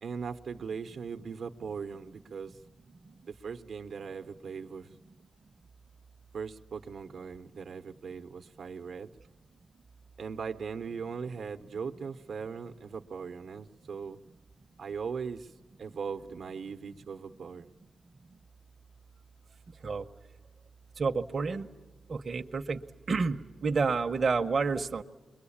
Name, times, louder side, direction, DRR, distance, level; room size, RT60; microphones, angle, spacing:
voice 1, 0.0-2.6 3.2-4.9 6.3-9.1 10.2-14.2 14.8-15.5 15.8-17.7, right 6 dB, 70° right, 0.8 m, -39 dB
voice 2, 21.0-21.7 22.1-22.8 23.1-25.0, right 4 dB, 45° right, 0.8 m, -29 dB
28.5 x 22.5 x 8.6 m
wide cardioid pair, 125°, 0 cm